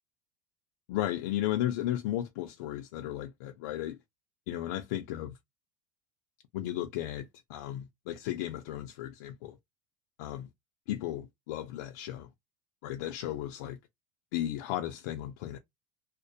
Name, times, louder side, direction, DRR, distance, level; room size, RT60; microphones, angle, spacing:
voice 1, 0.9-4.0 4.5-5.4 6.5-9.6 10.2-10.5 10.9-12.3 12.8-13.8 14.3-15.6, left 13 dB, 65° left, 0.3 m, -35 dB
2.4 x 2.0 x 2.6 m
cardioid pair, 175°, 10 cm